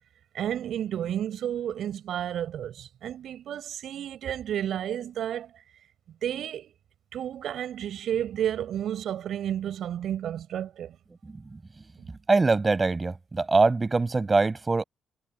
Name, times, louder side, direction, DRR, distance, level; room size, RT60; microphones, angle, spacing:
voice 1, 0.3-5.5 6.2-6.7 7.1-11.0, right 10 dB, 70° right, 6.3 m, -31 dB
voice 2, 12.3-14.8, right 3 dB, 25° right, 7.2 m, -23 dB
cardioid pair, 90°, 0 cm